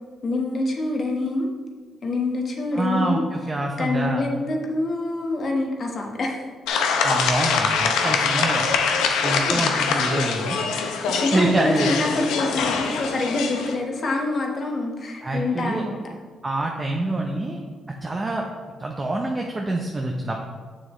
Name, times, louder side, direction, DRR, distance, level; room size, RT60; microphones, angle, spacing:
voice 1, 0.2-1.5 2.0-3.3 3.8-6.4 9.4-9.6 11.1-16.0, left 2 dB, 45° left, 1 dB, 1.2 m, -26 dB
voice 2, 2.7-4.2 7.0-8.7 9.2-10.6 11.3-12.0 15.2-15.8 16.4-17.6 18.0-18.4 18.8-20.4, right 2 dB, 25° right, 1 dB, 0.7 m, -25 dB
sound 1, 6.7-13.7, left 5 dB, 90° left, 0.7 m, -23 dB
7.1 x 6.3 x 3.1 m, 1.5 s
cardioid pair, 90°, 0 cm